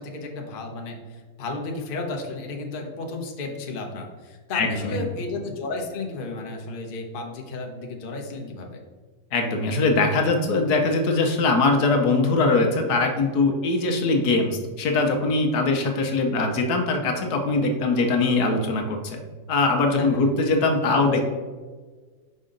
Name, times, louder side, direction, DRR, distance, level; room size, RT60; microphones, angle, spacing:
voice 1, 0.0-8.8 20.0-20.2 20.9-21.1, left 3 dB, 40° left, 2 dB, 0.8 m, -33 dB
voice 2, 4.5-5.0 9.3-19.2 19.5-21.3, left 3 dB, 65° left, 4 dB, 1.2 m, -22 dB
5.5 x 5.2 x 3.8 m, 1.4 s
omnidirectional pair, 1.9 m